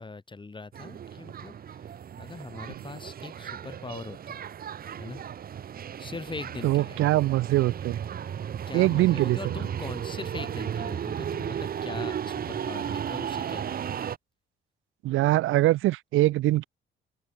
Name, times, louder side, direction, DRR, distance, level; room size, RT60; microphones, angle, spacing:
voice 1, 0.0-1.9 2.2-4.4 5.0-5.2 6.0-7.0 8.7-13.8, left 3 dB, 25° left, 3.6 m, -41 dB
sound 1, 0.7-14.2, right 9 dB, 50° right, 0.9 m, -35 dB
voice 2, 6.6-8.0 8.7-9.4 15.0-16.6, right 16 dB, 90° right, 1.4 m, -23 dB
open air
cardioid pair, 90°, 20 cm